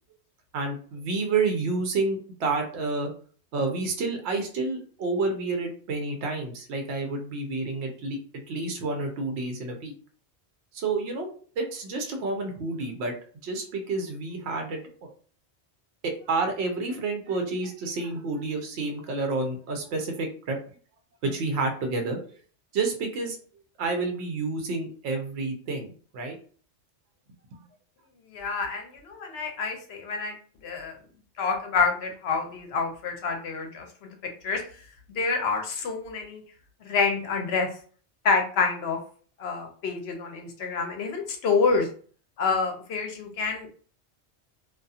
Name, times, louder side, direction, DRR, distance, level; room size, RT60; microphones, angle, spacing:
voice 1, 0.5-3.1 3.5-8.2 8.5-9.9 10.7-11.3 11.6-13.1 13.4-15.1 16.0-20.6 21.2-22.2 22.7-23.4 23.8-26.4 27.5-27.6, right 3 dB, 75° right, 4 dB, 0.8 m, -29 dB
voice 2, 28.3-30.3 30.6-31.0 31.4-34.1 34.4-34.6 35.2-36.4 36.8-37.7 38.2-39.0 39.4-41.9 42.4-43.7, left 4 dB, 70° left, 3 dB, 0.8 m, -27 dB
2.6 x 2.3 x 2.3 m, 0.43 s
omnidirectional pair, 1.2 m